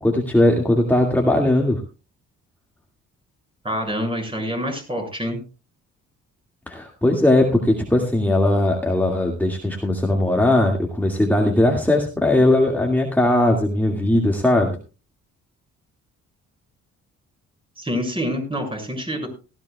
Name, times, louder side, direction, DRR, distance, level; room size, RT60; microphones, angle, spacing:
voice 1, 0.0-1.8 6.7-14.7, left 1 dB, 5° left, 1 dB, 2.1 m, -19 dB
voice 2, 3.6-5.4 17.8-19.3, equal, 15° right, 2 dB, 6.5 m, -26 dB
18.0 x 14.0 x 2.3 m, 0.33 s
cardioid pair, 90°, 30 cm